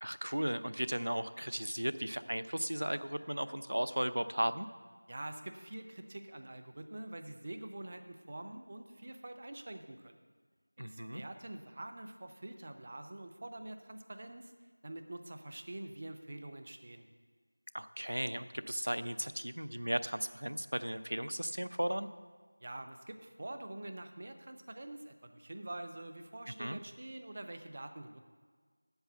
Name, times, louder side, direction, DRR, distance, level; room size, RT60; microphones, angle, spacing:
voice 1, 0.0-4.7 10.8-11.2 17.7-22.1 26.6-26.8, right 1 dB, 75° right, 13 dB, 0.5 m, -35 dB
voice 2, 5.1-10.2 10.8-14.5 14.8-17.1 22.6-28.2, right 1 dB, 25° right, 7 dB, 0.5 m, -46 dB
8.0 x 6.8 x 7.9 m, 1.5 s
figure-of-eight pair, 175°, 0 cm